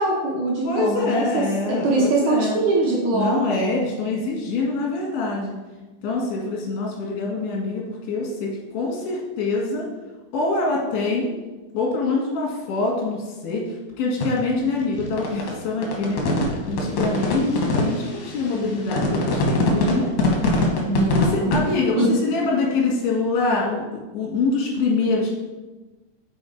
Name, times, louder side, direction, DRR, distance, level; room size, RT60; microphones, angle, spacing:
voice 1, 0.0-3.6 20.8-21.6 22.0-22.1, right 2 dB, 75° right, -3 dB, 1.8 m, -22 dB
voice 2, 0.6-2.6 3.1-5.5 6.0-9.9 10.3-11.3 11.7-20.1 21.2-25.3, left 3 dB, 90° left, -3 dB, 4.1 m, -25 dB
sound 1, 14.2-21.6, left 2 dB, 70° left, 1.7 m, -22 dB
7.8 x 4.3 x 4.5 m, 1.2 s
omnidirectional pair, 5.0 m